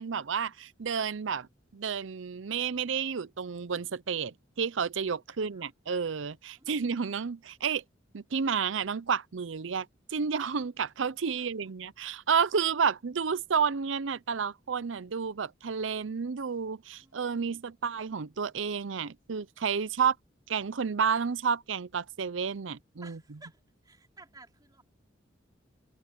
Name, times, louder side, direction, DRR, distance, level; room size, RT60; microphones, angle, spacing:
voice 1, 0.0-1.5 1.7-7.8 8.1-20.2 20.5-23.2, right 6 dB, 85° right, 0.6 m, -31 dB
voice 2, 17.0-17.8 23.0-24.8, right 3 dB, 20° right, 3.8 m, -55 dB
open air
head